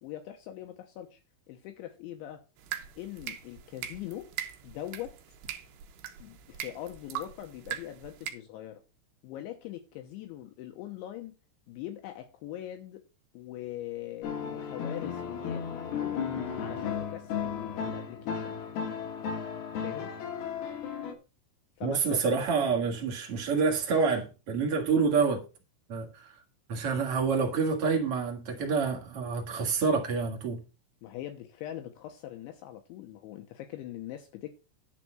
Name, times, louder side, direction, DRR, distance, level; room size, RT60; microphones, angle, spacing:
voice 1, 0.0-1.2 1.5-2.4 3.0-4.3 4.6-5.1 6.2-8.8 9.2-11.3 11.7-13.0 13.3-16.3 16.6-18.6 19.8-20.1 21.8-22.2 23.0-23.2 31.0-34.5, left 13 dB, 75° left, 3.1 m, -42 dB
sound 1, 2.6-8.3, right 10 dB, 70° right, 2.8 m, -41 dB
sound 2, 14.2-21.1, left 7 dB, 60° left, 3.5 m, -34 dB
voice 2, 21.8-25.4 25.9-26.3 26.7-30.6, right 5 dB, 85° right, 1.2 m, -27 dB
11.0 x 4.1 x 7.6 m
omnidirectional pair, 5.8 m